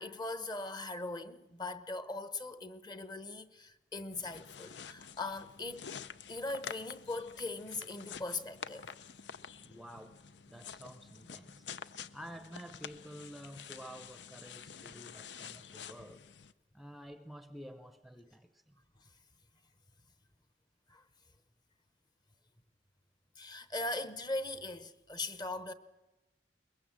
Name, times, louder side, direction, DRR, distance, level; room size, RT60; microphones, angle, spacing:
voice 1, 0.0-5.9 6.3-8.9 19.0-19.1 20.9-21.0 23.4-25.7, left 2 dB, 25° left, 0.9 m, -40 dB
sound 1, 4.1-16.5, left 7 dB, 90° left, 0.7 m, -49 dB
voice 2, 9.6-11.7 12.1-16.2 16.7-18.8, equal, ahead, 0.7 m, -50 dB
23.0 x 21.0 x 7.4 m
head